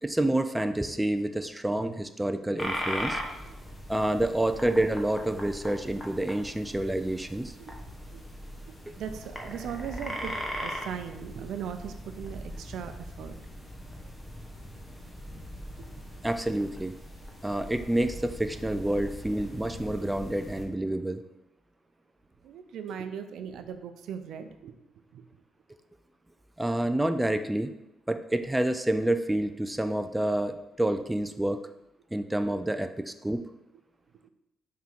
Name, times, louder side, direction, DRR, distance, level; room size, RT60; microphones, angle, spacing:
voice 1, 0.0-3.2 3.9-7.5 8.9-9.0 16.2-16.9 17.4-21.2 26.6-27.7 28.1-31.6 32.1-33.5, right 1 dB, 10° right, 8 dB, 0.4 m, -28 dB
sound 1, 2.6-20.7, equal, 15° left, 1.0 m, -40 dB
voice 2, 9.0-10.3 10.6-13.4 15.8-15.9 22.4-24.7 25.1-25.3 34.2-34.3, right 8 dB, 75° right, 8 dB, 0.5 m, -39 dB
5.7 x 3.7 x 4.5 m, 0.87 s
cardioid pair, 90°, 0 cm